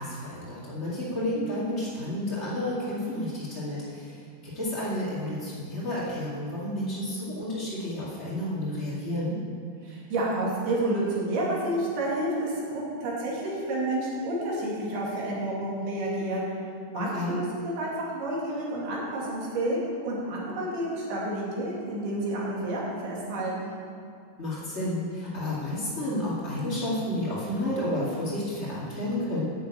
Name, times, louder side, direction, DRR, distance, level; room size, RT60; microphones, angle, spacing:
voice 1, 0.0-4.1 4.5-9.3 17.1-17.3 24.4-29.4, left 1 dB, 90° left, -9 dB, 0.6 m, -31 dB
voice 2, 9.8-16.4 16.9-19.8 20.0-23.8, right 1 dB, 60° right, -5 dB, 4.2 m, -30 dB
10.0 x 6.7 x 8.6 m, 2.2 s
omnidirectional pair, 5.5 m